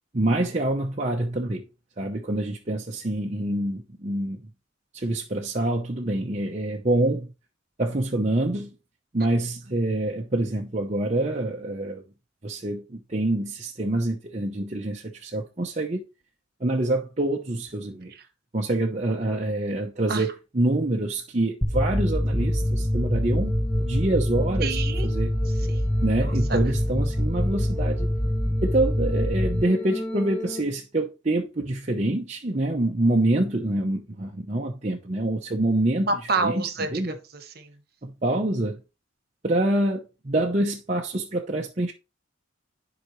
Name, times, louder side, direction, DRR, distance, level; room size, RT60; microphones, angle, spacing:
voice 1, 0.1-1.6 2.0-4.4 4.9-7.3 7.8-8.7 9.1-12.0 12.4-16.0 16.6-18.1 18.5-23.5 23.8-24.8 25.0-25.3 26.0-28.1 28.6-36.1 36.4-36.6 36.9-37.1 38.0-38.8 39.4-41.9, right 1 dB, 35° right, 0.8 m, -26 dB
sound 1, 21.6-30.6, equal, 5° left, 0.8 m, -25 dB
voice 2, 24.6-25.1 25.5-25.9 26.1-26.6 36.1-37.7, right 3 dB, 50° right, 1.2 m, -29 dB
11.0 x 4.9 x 3.1 m
head